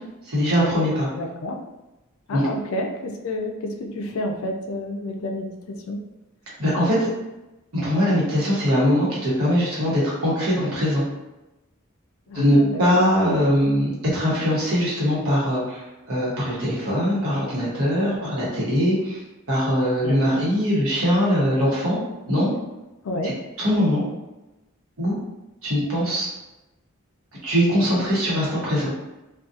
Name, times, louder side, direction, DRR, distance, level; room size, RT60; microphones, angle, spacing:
voice 1, 0.3-1.1 2.3-2.5 6.6-7.1 7.7-11.0 12.3-19.2 19.5-22.0 22.3-22.5 23.2-23.3 23.6-24.0 25.0-25.2 25.6-26.3 27.4-28.9, equal, 75° right, -6 dB, 1.0 m, -21 dB
voice 2, 1.1-1.5 2.3-5.5 5.9-6.0 12.3-13.0 20.0-20.5 23.0-23.3, left 1 dB, 75° left, 2 dB, 0.4 m, -30 dB
2.6 x 2.3 x 2.4 m, 1.0 s
head